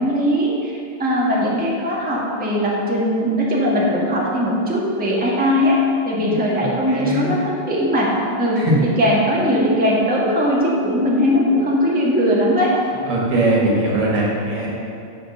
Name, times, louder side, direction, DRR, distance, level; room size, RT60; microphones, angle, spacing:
voice 1, 0.0-5.8 6.0-8.1 8.4-12.7, equal, 5° right, -5 dB, 1.3 m, -19 dB
voice 2, 6.1-7.3 8.5-8.8 13.0-14.7, right 1 dB, 85° right, -4 dB, 2.8 m, -21 dB
8.7 x 5.2 x 6.7 m, 2.4 s
omnidirectional pair, 2.4 m